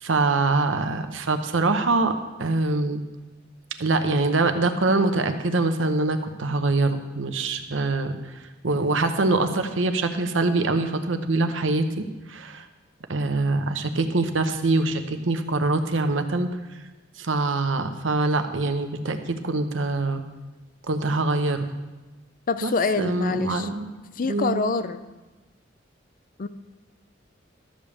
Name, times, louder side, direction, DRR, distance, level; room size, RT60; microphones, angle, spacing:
voice 1, 0.0-2.1 2.4-3.0 3.8-8.2 8.6-12.7 13.1-16.5 17.2-20.2 20.9-21.7 22.6-22.7 23.0-23.9 24.3-24.7, right 3 dB, 80° right, 8 dB, 0.9 m, -24 dB
voice 2, 22.5-23.7 24.2-25.0 26.4-26.5, left 4 dB, 45° left, 13 dB, 0.5 m, -26 dB
12.5 x 5.2 x 7.1 m, 1.2 s
head